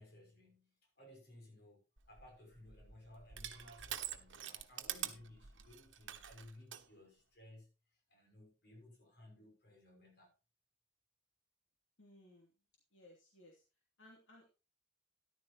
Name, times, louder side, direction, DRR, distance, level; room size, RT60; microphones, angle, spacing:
voice 1, 0.0-7.7 8.1-10.3, left 1 dB, 55° left, 6.1 m, -59 dB
Crushing, 2.0-6.8, right 11 dB, 75° right, 1.2 m, -46 dB
voice 2, 12.0-12.5 12.9-13.6 14.0-14.5, left 1 dB, 80° left, 2.8 m, -61 dB
13.5 x 11.0 x 2.9 m
head